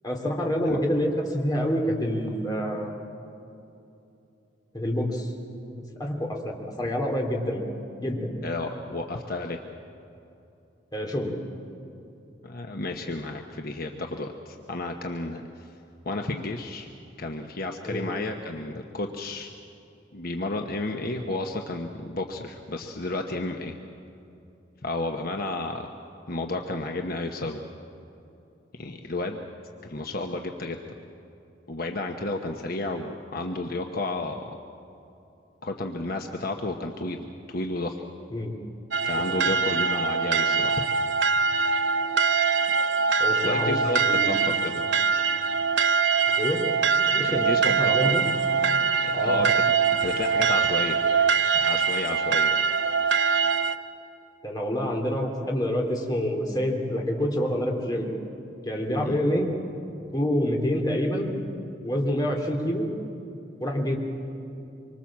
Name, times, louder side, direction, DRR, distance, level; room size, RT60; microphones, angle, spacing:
voice 1, 0.0-2.9 4.7-5.3 6.0-7.6 8.0-8.4 10.9-11.3 17.8-18.0 38.3-38.5 39.3-39.5 43.2-44.4 46.4-46.6 47.1-48.2 49.1-49.4 54.4-58.1 58.6-59.5 60.1-61.3 61.8-62.8 63.6-63.9, equal, 25° left, 0 dB, 3.2 m, -27 dB
voice 2, 8.4-9.6 12.4-15.7 16.0-16.9 17.2-19.5 20.1-23.7 24.8-25.9 26.3-27.6 28.8-29.4 29.8-30.8 31.7-34.6 35.6-38.0 39.0-40.8 43.4-44.8 47.2-48.1 49.0-49.7 50.0-51.0 51.5-52.5 59.0-59.2, left 2 dB, 55° left, 3 dB, 1.1 m, -32 dB
sound 1, 38.9-53.8, right 5 dB, 85° right, 0.8 m, -23 dB
25.5 x 24.0 x 7.4 m, 2.8 s
head